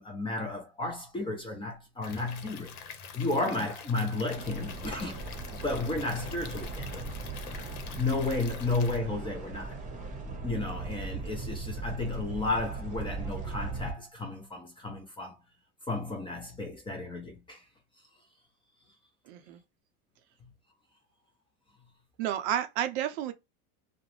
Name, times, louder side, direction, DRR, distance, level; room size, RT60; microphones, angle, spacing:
voice 1, 0.0-2.8 3.1-5.2 5.6-7.0 8.0-9.8 10.4-15.4 15.9-17.6 20.4-20.5, left 2 dB, 10° left, 0.4 m, -33 dB
Stream / Liquid, 2.0-9.0, left 6 dB, 85° left, 0.8 m, -46 dB
sound 1, 4.3-13.9, right 3 dB, 15° right, 0.8 m, -38 dB
voice 2, 19.3-19.6 22.2-23.3, right 11 dB, 50° right, 0.5 m, -31 dB
2.4 x 2.0 x 3.1 m
supercardioid pair, 120°, 44 cm